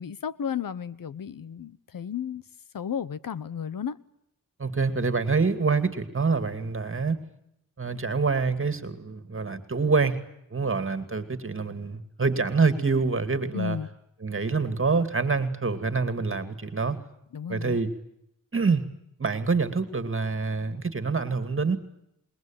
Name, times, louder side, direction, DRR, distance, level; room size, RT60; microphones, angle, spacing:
voice 1, 0.0-2.4 2.7-4.0 13.5-13.9 17.3-17.8, left 8 dB, 80° left, 1.1 m, -33 dB
voice 2, 4.6-7.2 7.8-10.2 10.5-13.8 14.2-17.0 17.5-17.9 18.5-18.9 19.2-21.8, right 4 dB, 40° right, 2.5 m, -26 dB
27.0 x 21.5 x 9.1 m
wide cardioid pair, 95°, 33 cm